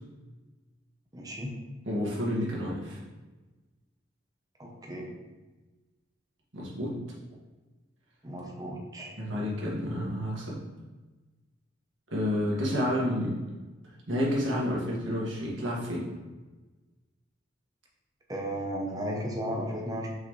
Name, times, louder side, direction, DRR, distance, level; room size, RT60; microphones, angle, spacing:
voice 1, 1.1-1.6 4.6-5.1 8.2-9.1 18.3-20.1, equal, 20° right, -1 dB, 1.0 m, -34 dB
voice 2, 1.8-3.0 6.5-7.0 9.2-10.6 12.1-13.4 14.1-16.1, equal, 70° right, -5 dB, 1.9 m, -30 dB
5.7 x 5.5 x 3.3 m, 1.2 s
head